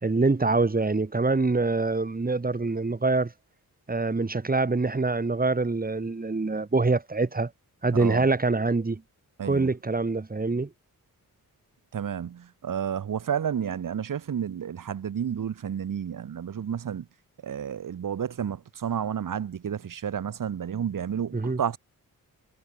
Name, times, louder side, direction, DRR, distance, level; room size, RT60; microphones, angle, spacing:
voice 1, 0.0-3.3 3.9-7.5 7.8-9.0 9.4-10.7 21.3-21.6, right 3 dB, 25° right, 2.5 m, -25 dB
voice 2, 9.4-9.7 11.9-17.1 17.4-21.8, right 8 dB, 65° right, 1.5 m, -31 dB
cardioid pair, 85°, 35 cm